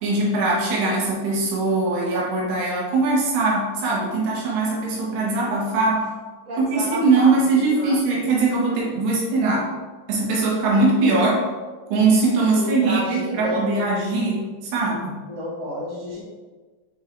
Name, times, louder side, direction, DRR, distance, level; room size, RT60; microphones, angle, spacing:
voice 1, 0.0-6.1 6.6-9.7 10.1-11.5 11.9-14.4 14.7-15.2, right 3 dB, 80° right, -4 dB, 3.6 m, -21 dB
voice 2, 6.4-8.2 12.5-13.7 15.3-16.2, right 1 dB, 55° right, -7 dB, 1.6 m, -31 dB
8.5 x 3.5 x 3.5 m, 1.4 s
omnidirectional pair, 4.8 m